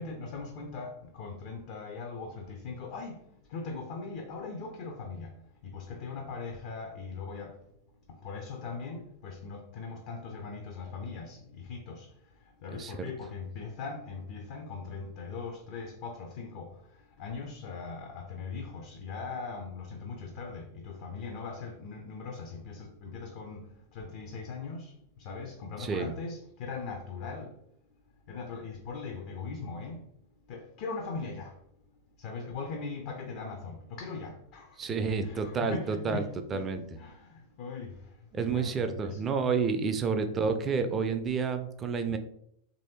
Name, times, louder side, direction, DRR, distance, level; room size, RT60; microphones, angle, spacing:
voice 1, 0.0-7.7 8.1-27.6 28.3-30.1 30.5-31.6 32.2-35.0 35.2-36.7 37.0-39.4 40.1-40.3, left 4 dB, 45° left, 0.4 m, -40 dB
voice 2, 25.8-26.1 34.8-36.3 36.5-36.8 38.3-42.2, right 5 dB, 25° right, 0.4 m, -29 dB
3.1 x 2.6 x 2.8 m
figure-of-eight pair, 90°, 0 cm